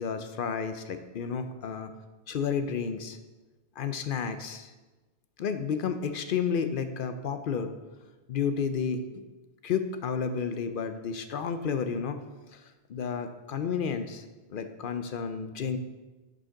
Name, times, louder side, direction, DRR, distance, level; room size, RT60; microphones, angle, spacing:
voice 1, 0.0-1.9 2.3-3.2 3.8-4.7 5.4-7.7 8.3-9.2 9.6-12.2 12.5-12.6 12.9-14.2 14.5-15.8, left 6 dB, 60° left, 9 dB, 0.7 m, -31 dB
10.0 x 5.1 x 3.8 m, 1.2 s
omnidirectional pair, 1.1 m